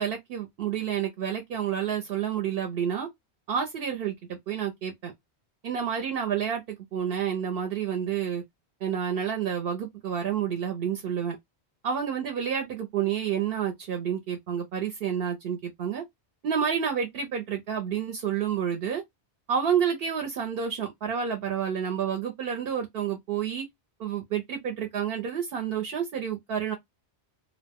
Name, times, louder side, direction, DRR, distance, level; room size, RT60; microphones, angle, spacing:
voice 1, 0.0-3.1 3.5-4.1 4.5-5.1 5.6-8.4 8.8-11.4 11.8-16.0 16.4-19.0 19.5-23.7 24.0-26.8, right 8 dB, 65° right, 0.8 m, -29 dB
2.6 x 2.0 x 3.4 m
omnidirectional pair, 1.1 m